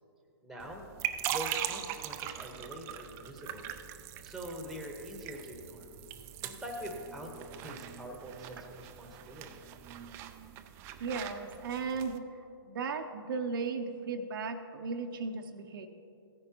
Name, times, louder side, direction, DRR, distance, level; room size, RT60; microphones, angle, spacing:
voice 1, 0.4-0.8 1.3-3.7 4.2-5.9 6.4-7.3 7.6-9.6, equal, ahead, 2 dB, 1.1 m, -44 dB
sound 1, 0.6-12.2, right 11 dB, 20° right, 0.3 m, -41 dB
voice 2, 11.0-15.9, right 4 dB, 60° right, 6 dB, 0.6 m, -36 dB
16.0 x 9.8 x 2.9 m, 2.7 s
hypercardioid pair, 150°, 13 cm